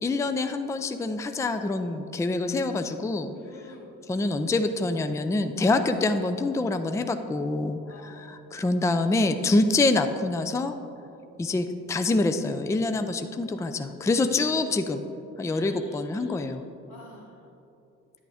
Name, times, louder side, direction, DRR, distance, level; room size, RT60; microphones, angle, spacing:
voice 1, 0.0-3.3 4.1-10.7 11.4-15.0 15.4-16.6, left 2 dB, 10° left, 8 dB, 0.4 m, -26 dB
voice 2, 3.3-3.9 7.8-8.4 13.9-14.4 15.4-16.5 16.9-17.4, left 1 dB, 90° left, -3 dB, 2.0 m, -49 dB
10.0 x 8.4 x 3.5 m, 2.7 s
cardioid pair, 90°, 30 cm